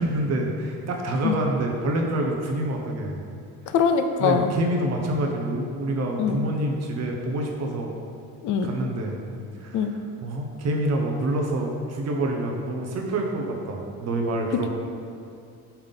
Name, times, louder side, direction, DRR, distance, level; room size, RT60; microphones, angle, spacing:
voice 1, 0.0-3.2 4.2-8.0 8.6-9.2 9.6-14.7, right 1 dB, 45° right, 1 dB, 0.8 m, -27 dB
voice 2, 3.7-4.5 6.2-6.4 8.4-8.7 9.7-9.9, left 6 dB, 55° left, 7 dB, 0.5 m, -22 dB
5.7 x 3.5 x 5.6 m, 2.3 s
cardioid pair, 150°, 36 cm